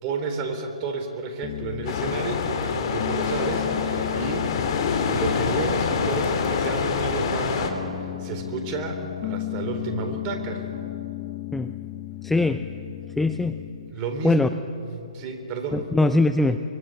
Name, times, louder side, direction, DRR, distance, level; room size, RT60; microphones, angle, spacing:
voice 1, 0.0-4.6 5.0-10.6 13.9-14.5 14.9-15.8, right 4 dB, 30° right, 4 dB, 3.8 m, -31 dB
Piano, 1.4-13.9, left 18 dB, 30° left, 0.9 m, -35 dB
sound 1, 1.9-7.7, left 5 dB, 50° left, 3.3 m, -26 dB
voice 2, 12.2-12.7 13.2-13.6 14.2-14.5 15.7-16.6, left 2 dB, 5° left, 10 dB, 0.5 m, -21 dB
24.5 x 23.5 x 8.0 m, 2.9 s
hypercardioid pair, 145°, 4 cm